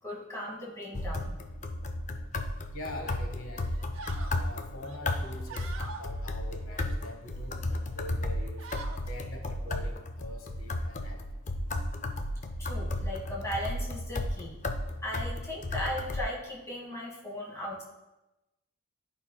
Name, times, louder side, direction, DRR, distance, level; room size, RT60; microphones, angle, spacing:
voice 1, 0.0-1.4 12.6-14.6 15.0-17.8, left 1 dB, 15° left, -3 dB, 1.5 m, -37 dB
sound 1, 0.9-16.2, left 1 dB, 35° left, 0.4 m, -34 dB
voice 2, 2.7-3.8 4.3-8.7 9.1-11.2, left 1 dB, 80° left, 3 dB, 1.0 m, -44 dB
sound 2, 2.9-3.2 3.6-4.4 4.8-6.1 6.6-7.5 7.9-8.1 8.4-9.0, right 4 dB, 70° right, 0.8 m, -45 dB
11.5 x 5.3 x 2.2 m, 1.0 s
head